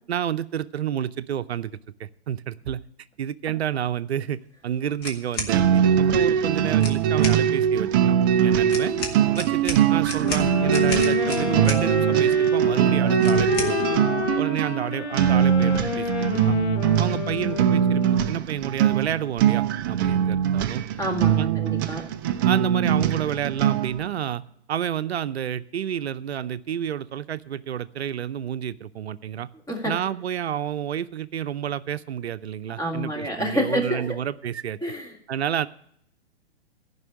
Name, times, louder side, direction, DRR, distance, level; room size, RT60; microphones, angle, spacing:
voice 1, 0.1-2.8 3.2-8.2 8.4-9.0 9.4-13.8 14.4-16.6 17.0-20.8 21.4-21.6 22.5-24.4 24.7-29.5 29.8-34.8 35.3-35.7, right 9 dB, 70° right, 14 dB, 0.6 m, -30 dB
cookie scoop, 5.0-5.5 6.7-7.4 8.7-11.8 13.2-13.7, left 3 dB, 30° left, 1.8 m, -32 dB
sound 1, 5.5-24.0, right 9 dB, 20° right, 0.4 m, -22 dB
sound 2, 10.2-18.4, left 6 dB, 80° left, 1.6 m, -30 dB
voice 2, 21.0-22.1 29.7-30.0 32.8-34.2 34.8-35.1, equal, 10° left, 1 dB, 2.1 m, -28 dB
14.0 x 5.6 x 8.3 m, 0.68 s
figure-of-eight pair, 120°, 33 cm